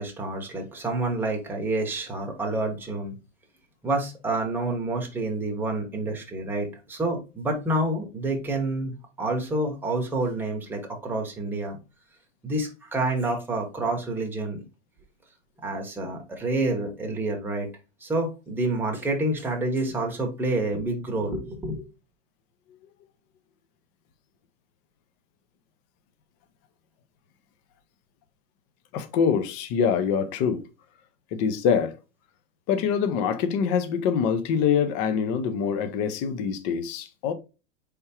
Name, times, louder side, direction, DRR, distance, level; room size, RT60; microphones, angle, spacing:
voice 1, 0.0-3.1 3.8-11.8 12.4-14.6 15.6-17.7 18.0-21.8, right 2 dB, 5° right, 0.8 m, -28 dB
voice 2, 28.9-30.6 31.3-32.0 32.7-37.3, left 7 dB, 30° left, 0.5 m, -24 dB
4.5 x 3.5 x 2.8 m
supercardioid pair, 145°, 39 cm